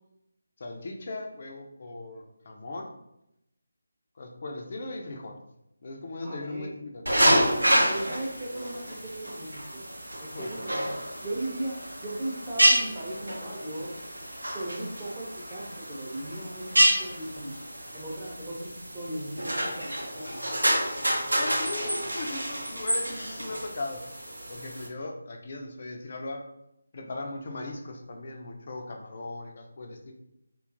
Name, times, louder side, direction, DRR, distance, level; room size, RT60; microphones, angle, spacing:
voice 1, 0.6-2.9 4.2-5.4 5.8-7.2 10.3-10.5 21.3-24.0 24.5-26.4 26.9-30.1, left 2 dB, 40° left, 2 dB, 0.4 m, -38 dB
voice 2, 6.2-6.7 7.9-9.8 10.2-10.9 11.2-14.0 14.5-17.6 17.9-18.7 18.9-20.2, right 1 dB, 15° right, -6 dB, 0.6 m, -37 dB
sound 1, 7.1-24.9, right 1 dB, 75° right, 0.6 m, -28 dB
2.7 x 2.3 x 2.5 m, 0.83 s
figure-of-eight pair, 155°, 0 cm